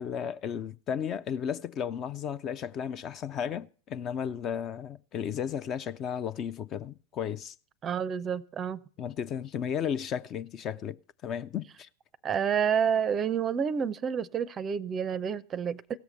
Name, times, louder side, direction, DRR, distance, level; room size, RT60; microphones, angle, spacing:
voice 1, 0.0-7.6 9.0-11.0 11.2-11.9, left 8 dB, 30° left, 0.5 m, -34 dB
voice 2, 7.8-8.8 12.2-16.0, right 7 dB, 25° right, 0.5 m, -29 dB
16.5 x 7.1 x 6.6 m
figure-of-eight pair, 90°, 0 cm